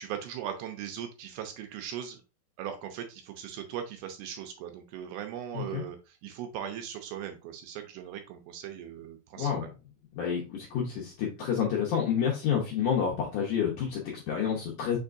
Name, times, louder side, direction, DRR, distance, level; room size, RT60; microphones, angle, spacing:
voice 1, 0.0-2.2 2.6-9.7, right 9 dB, 80° right, 5 dB, 2.4 m, -39 dB
voice 2, 5.5-5.8 9.4-9.6 10.2-15.0, left 8 dB, 75° left, -3 dB, 1.9 m, -29 dB
5.8 x 3.6 x 2.5 m, 0.30 s
omnidirectional pair, 4.7 m